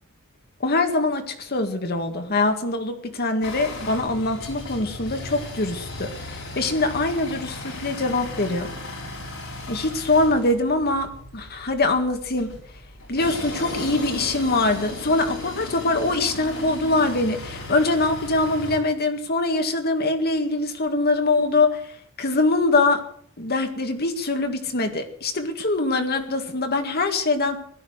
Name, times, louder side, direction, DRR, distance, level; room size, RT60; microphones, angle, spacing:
voice 1, 0.6-8.7 9.7-12.5 13.1-23.0 23.4-27.6, left 2 dB, 50° left, 6 dB, 1.9 m, -23 dB
sound 1, 3.4-18.8, left 2 dB, 70° left, 4.8 m, -36 dB
16.5 x 12.5 x 6.5 m, 0.63 s
head